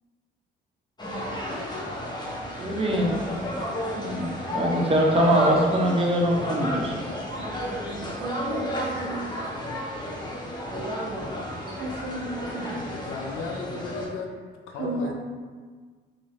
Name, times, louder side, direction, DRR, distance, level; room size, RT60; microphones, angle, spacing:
sound 1, 1.0-14.1, equal, 20° left, 0.8 m, -32 dB
voice 1, 2.6-3.1 4.0-6.9, right 1 dB, 30° right, -1 dB, 0.8 m, -23 dB
voice 2, 8.2-9.2 11.7-12.8 14.7-15.1, right 2 dB, 85° right, 1 dB, 0.6 m, -33 dB
voice 3, 12.9-14.3 14.7-15.1, left 4 dB, 85° left, 2 dB, 0.5 m, -35 dB
3.7 x 2.7 x 3.4 m, 1.5 s
cardioid pair, 90°, 20 cm